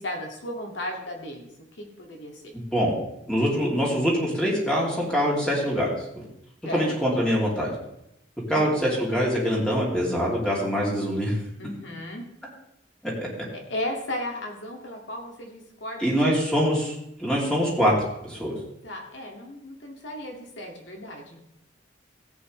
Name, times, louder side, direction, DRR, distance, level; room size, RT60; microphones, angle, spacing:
voice 1, 0.0-1.5 1.8-2.5 6.6-7.2 8.5-8.7 11.6-12.2 13.5-16.4 18.8-21.4, left 1 dB, 75° left, 1 dB, 2.3 m, -35 dB
voice 2, 2.5-3.0 3.3-6.2 6.7-7.7 8.5-11.4 13.0-13.1 16.0-17.9 18.2-18.5, equal, 5° left, -5 dB, 2.9 m, -24 dB
16.0 x 8.5 x 3.3 m, 0.82 s
head